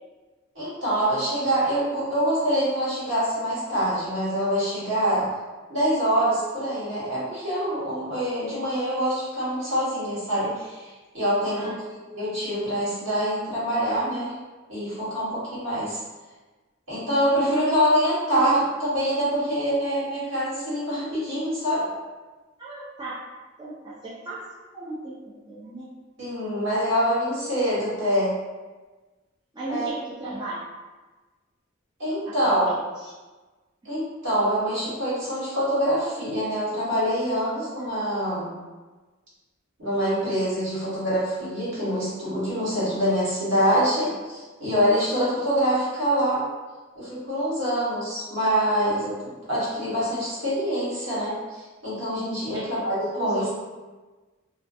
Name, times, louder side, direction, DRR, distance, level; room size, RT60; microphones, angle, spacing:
voice 1, 0.5-5.3 5.7-14.3 14.7-16.0 16.9-21.9 26.2-28.3 29.7-29.8 30.2-30.3 32.0-32.7 33.8-38.5 39.8-46.4 46.9-53.5, equal, 65° right, -10 dB, 1.3 m, -25 dB
voice 2, 22.6-23.2 23.6-24.4 24.7-25.2 25.5-25.9 29.5-30.6 32.3-32.7 33.0-33.1 37.8-38.2 52.5-52.8 53.2-53.5, right 2 dB, 20° right, -9 dB, 0.4 m, -35 dB
2.4 x 2.2 x 2.5 m, 1.3 s
head